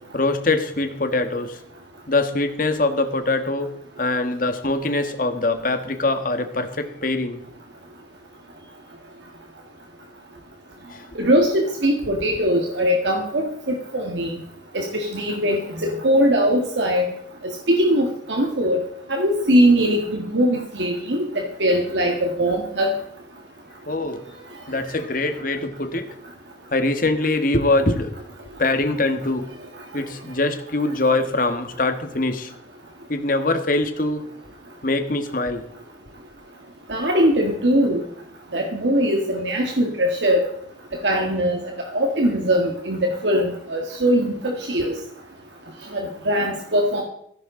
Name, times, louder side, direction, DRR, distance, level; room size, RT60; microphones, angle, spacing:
voice 1, 0.1-1.6 2.1-7.4 10.9-11.0 23.9-24.2 24.7-26.1 26.7-28.1 28.6-29.4 29.9-32.5 33.1-34.3 34.8-35.6, left 2 dB, 50° left, 8 dB, 1.5 m, -23 dB
voice 2, 11.2-14.3 14.7-17.1 17.4-18.8 19.1-22.9 36.9-38.0 38.5-40.4 41.0-41.6 41.9-45.0 45.9-47.0, equal, 85° right, 2 dB, 1.8 m, -21 dB
15.5 x 13.5 x 3.8 m, 0.71 s
head